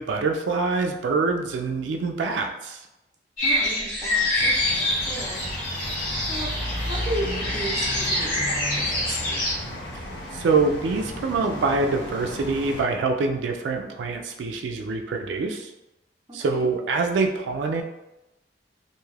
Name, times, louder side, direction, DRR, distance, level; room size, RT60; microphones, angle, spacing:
voice 1, 0.0-2.8 10.3-15.7 16.3-17.8, right 4 dB, 90° right, 3 dB, 0.3 m, -25 dB
sound 1, 3.4-9.5, left 1 dB, 50° left, 1.1 m, -26 dB
voice 2, 3.4-5.4 5.9-9.6 16.3-16.7, right 1 dB, 20° right, -3 dB, 0.6 m, -35 dB
sound 2, 4.4-12.8, left 1 dB, 75° left, 0.7 m, -34 dB
2.6 x 2.3 x 3.2 m, 0.94 s
head